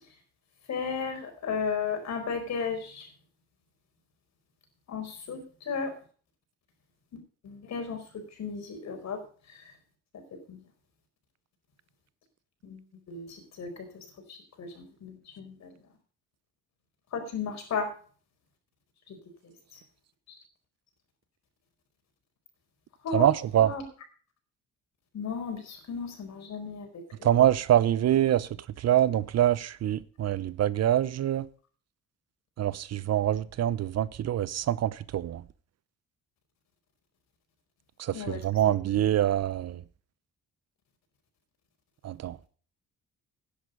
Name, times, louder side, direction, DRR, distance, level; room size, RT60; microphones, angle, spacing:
voice 1, 0.7-3.1 4.9-5.9 7.1-9.2 9.5-9.6 10.5-10.6 12.6-15.7 17.1-17.9 19.1-19.2 19.7-19.8 23.0-23.3 23.6-23.8 25.1-26.9 27.2-27.3 38.1-38.8, left 5 dB, 60° left, 4.8 m, -35 dB
voice 2, 23.1-23.7 27.2-28.5 28.8-31.5 32.6-35.4 38.0-39.8 42.0-42.4, right 11 dB, 55° right, 0.7 m, -25 dB
11.5 x 10.0 x 5.2 m
cardioid pair, 90°, 30 cm